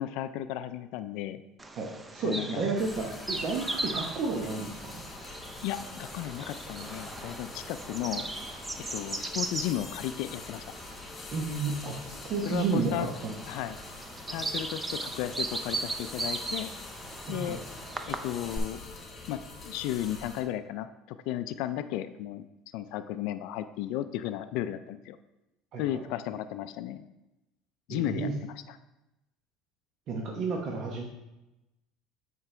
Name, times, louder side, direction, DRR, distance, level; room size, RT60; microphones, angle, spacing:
voice 1, 0.0-1.4 2.2-2.6 5.6-8.2 8.9-10.6 12.4-13.1 13.5-13.8 14.3-16.7 17.3-17.6 18.1-18.8 19.3-22.4 22.7-25.2 25.8-27.0 27.9-28.8, left 12 dB, 70° left, 10 dB, 0.3 m, -34 dB
Bird vocalization bird call bird song, 1.6-18.6, right 2 dB, 15° right, 0.6 m, -38 dB
voice 2, 1.8-5.0 11.3-13.4 17.3-17.6 25.7-26.0 27.9-28.3 30.1-31.0, right 4 dB, 55° right, 0 dB, 0.9 m, -32 dB
sound 1, 2.8-20.4, left 3 dB, 30° left, 1.4 m, -45 dB
8.0 x 4.6 x 3.3 m, 0.96 s
supercardioid pair, 105°, 0 cm